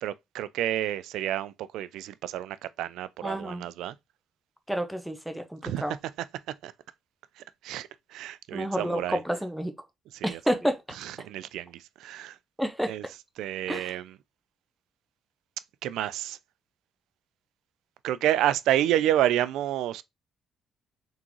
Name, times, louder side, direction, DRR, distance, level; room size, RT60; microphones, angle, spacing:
voice 1, 0.0-4.0 5.6-5.8 6.6-6.7 7.4-9.2 10.1-10.4 11.0-12.4 12.9-13.1 13.4-14.2 15.8-16.4 18.0-20.0, right 12 dB, 90° right, 0.3 m, -29 dB
voice 2, 3.2-3.6 4.7-5.9 8.5-9.7 10.2-10.8 12.6-12.9 13.7-13.9, equal, 5° right, 0.7 m, -29 dB
3.7 x 3.6 x 3.0 m
cardioid pair, 90°, 0 cm